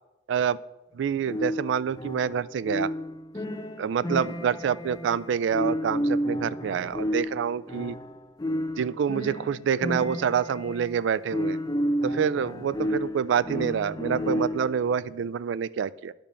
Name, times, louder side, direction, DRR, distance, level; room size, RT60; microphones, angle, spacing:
voice 1, 0.9-2.9 3.8-8.0 8.8-11.6 12.0-16.1, right 7 dB, 80° right, 18 dB, 0.3 m, -27 dB
sound 1, 1.3-14.8, equal, 20° left, 0.5 m, -31 dB
10.0 x 5.3 x 6.7 m, 1.0 s
head